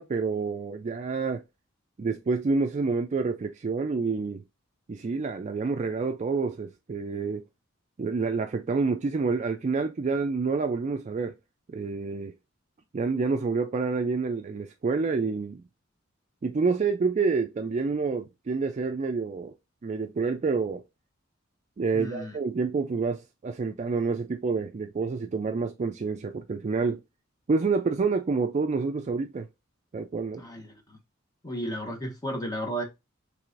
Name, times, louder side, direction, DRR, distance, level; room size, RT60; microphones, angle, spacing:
voice 1, 0.0-1.4 2.0-4.4 4.9-7.4 8.0-11.3 11.7-12.3 12.9-15.6 16.4-19.5 19.8-20.8 21.8-27.0 27.5-29.5 29.9-30.4, right 4 dB, 35° right, 0.3 m, -28 dB
voice 2, 21.9-22.4 30.4-31.0 31.4-32.8, right 1 dB, 20° left, 0.9 m, -34 dB
4.7 x 3.3 x 2.5 m
head